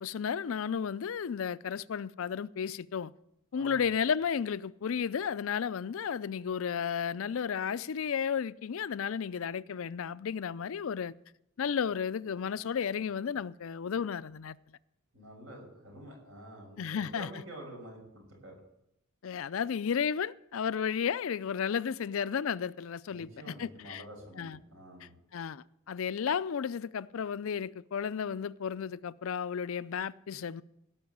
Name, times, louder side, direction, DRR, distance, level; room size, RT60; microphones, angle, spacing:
voice 1, 0.0-3.1 3.5-11.1 11.6-14.6 16.8-17.3 19.2-24.0 24.4-24.6 25.0-30.6, left 7 dB, 70° left, 0.4 m, -33 dB
voice 2, 15.1-18.6 23.1-25.1, right 1 dB, 65° right, 6.3 m, -48 dB
17.5 x 6.2 x 9.3 m
head